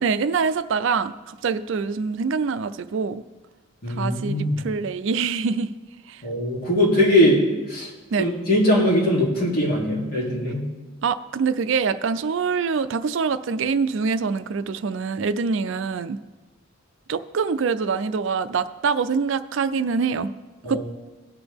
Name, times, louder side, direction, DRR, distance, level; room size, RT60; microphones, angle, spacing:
voice 1, 0.0-3.2 4.0-5.8 6.1-6.2 8.1-8.3 11.0-16.2 17.1-20.3 20.6-20.8, right 5 dB, 65° right, 13 dB, 0.4 m, -25 dB
voice 2, 3.8-4.6 6.2-7.4 7.7-7.9 8.2-10.7 20.6-20.8, left 1 dB, 50° left, -4 dB, 2.8 m, -21 dB
17.5 x 6.0 x 3.5 m, 1.2 s
head